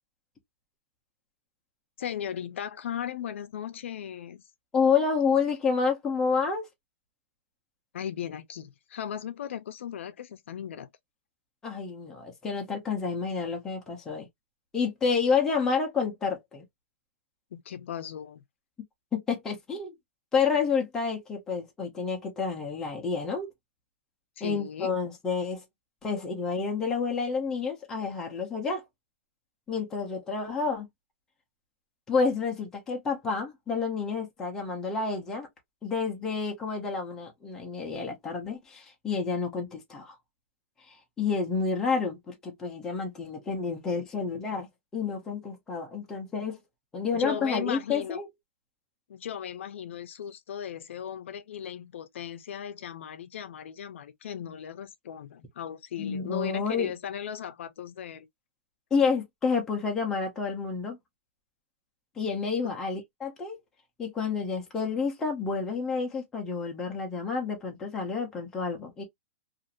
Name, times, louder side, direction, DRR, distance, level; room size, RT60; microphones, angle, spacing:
voice 1, 2.0-4.4 7.9-10.9 17.5-18.4 24.4-24.9 47.1-48.2 49.1-58.3 62.6-62.7, left 9 dB, 70° left, 0.5 m, -37 dB
voice 2, 4.7-6.7 11.6-14.3 14.7-16.6 19.1-19.9 20.3-23.5 24.4-25.6 26.0-28.8 29.7-30.9 32.1-35.5 35.8-40.1 40.9-46.6 46.9-48.3 56.0-56.9 58.9-61.0 62.2-63.6 64.0-69.0, left 5 dB, 5° left, 0.5 m, -29 dB
2.5 x 2.4 x 2.7 m
supercardioid pair, 180°, 7 cm